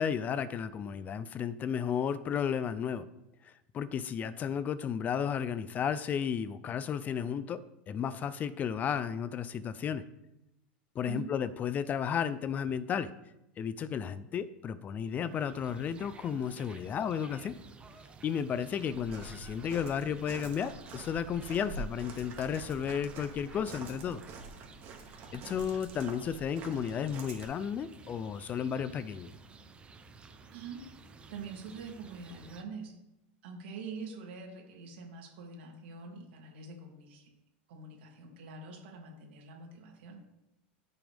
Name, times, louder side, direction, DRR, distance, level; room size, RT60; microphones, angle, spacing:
voice 1, 0.0-3.1 3.4-10.0 11.0-13.1 13.6-17.6 18.2-24.2 25.3-29.3, left 8 dB, 25° left, 15 dB, 0.5 m, -33 dB
sound 1, 15.0-32.6, right 4 dB, 20° right, 0.8 m, -54 dB
Walk footsteps, 18.9-27.4, right 3 dB, 40° right, 2.0 m, -46 dB
voice 2, 30.5-30.8 31.3-32.9 33.4-37.3 37.7-40.2, right 4 dB, 75° right, 0 dB, 2.9 m, -44 dB
14.0 x 6.0 x 3.5 m, 0.88 s
supercardioid pair, 135°, 6 cm